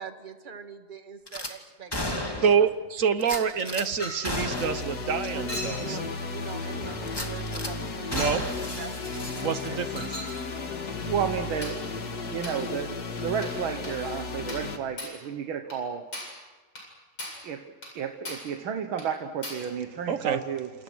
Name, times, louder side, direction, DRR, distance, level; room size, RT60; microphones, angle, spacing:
voice 1, 0.0-2.5 5.3-8.4 8.7-9.9, right 6 dB, 25° right, 6 dB, 1.8 m, -43 dB
Gunshot gunfire / Glass, 1.3-1.5 1.9-2.7 3.2-3.9 4.2-4.9 5.2-5.3 5.8-5.9 7.1-7.7 8.1-9.9 10.2-10.4, left 1 dB, 10° left, 2.5 m, -34 dB
voice 2, 2.4-6.0 8.1-8.4 9.4-10.1 20.1-20.4, right 6 dB, 45° right, 11 dB, 1.4 m, -26 dB
Chink clink, 4.0-4.3 5.5-5.9 6.9-7.0 8.2-8.4 10.0-10.4 11.6-11.8 12.4-12.6 13.4-13.6 13.8-14.0 14.5-14.7 15.0-15.2 15.7-15.8 16.1-16.4 16.8-16.9 17.2-17.5 17.8-18.0 18.3-18.5 19.0-19.1 19.4-19.7, left 1 dB, 75° left, 9.0 m, -38 dB
sound 1, 4.5-14.8, left 4 dB, 55° left, 2.4 m, -34 dB
voice 3, 11.1-11.8 12.3-16.1 17.4-20.7, right 8 dB, 85° right, 6 dB, 2.1 m, -32 dB
28.5 x 28.0 x 6.3 m, 1.3 s
omnidirectional pair, 2.1 m